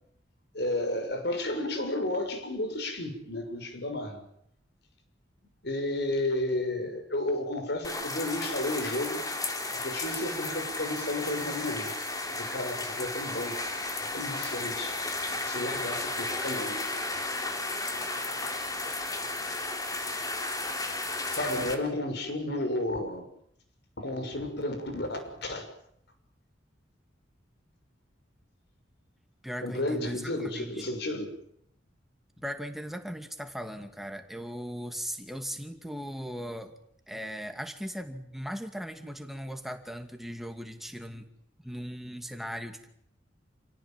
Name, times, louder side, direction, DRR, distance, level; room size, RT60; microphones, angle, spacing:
voice 1, 0.5-4.2 5.6-9.2 9.7-12.0 12.4-13.6 14.1-15.0 15.3-16.8 21.2-23.3 24.0-25.7 29.6-31.3, left 1 dB, 60° left, 7 dB, 6.4 m, -32 dB
sound 1, 7.8-21.7, left 2 dB, 20° left, 3.5 m, -34 dB
voice 2, 29.4-30.8 32.4-36.7 37.1-41.3 41.6-42.9, equal, ahead, 6 dB, 2.5 m, -38 dB
29.0 x 17.5 x 9.1 m, 0.71 s
head